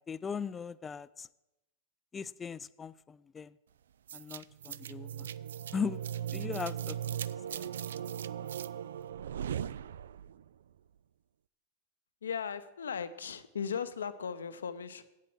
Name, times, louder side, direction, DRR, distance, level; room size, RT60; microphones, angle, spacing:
voice 1, 0.1-1.3 2.1-3.5 4.1-5.3 5.7-6.0 6.3-7.0 7.5-7.7, left 6 dB, 20° left, 17 dB, 0.4 m, -38 dB
sound 1, 4.1-10.4, right 9 dB, 65° right, 0.3 m, -38 dB
voice 2, 12.2-15.0, left 7 dB, 70° left, 12 dB, 0.7 m, -37 dB
8.7 x 8.4 x 7.5 m, 0.95 s
figure-of-eight pair, 90°, 0 cm